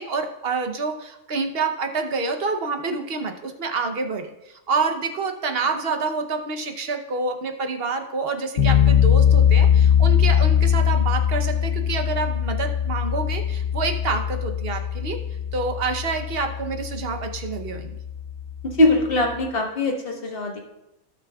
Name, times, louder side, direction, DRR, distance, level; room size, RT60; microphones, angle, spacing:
voice 1, 0.0-15.2 15.5-18.0, right 4 dB, 50° right, 5 dB, 1.0 m, -27 dB
sound 1, 8.6-19.5, left 9 dB, 65° left, 1.1 m, -21 dB
voice 2, 18.8-20.6, left 2 dB, 45° left, 0 dB, 1.6 m, -21 dB
16.5 x 6.0 x 2.3 m, 0.91 s
omnidirectional pair, 1.3 m